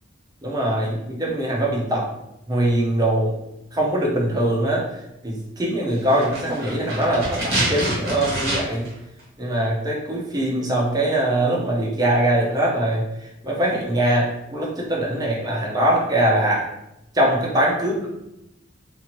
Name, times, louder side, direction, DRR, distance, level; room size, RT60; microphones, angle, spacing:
voice 1, 0.4-2.1 2.5-3.3 3.7-4.8 5.2-8.8 9.4-13.1 13.4-16.7 17.1-18.1, right 1 dB, 20° right, -3 dB, 0.5 m, -22 dB
sound 1, 6.1-8.9 9.2-9.3, right 1 dB, 50° right, 1.2 m, -26 dB
2.7 x 2.5 x 2.9 m, 0.86 s
head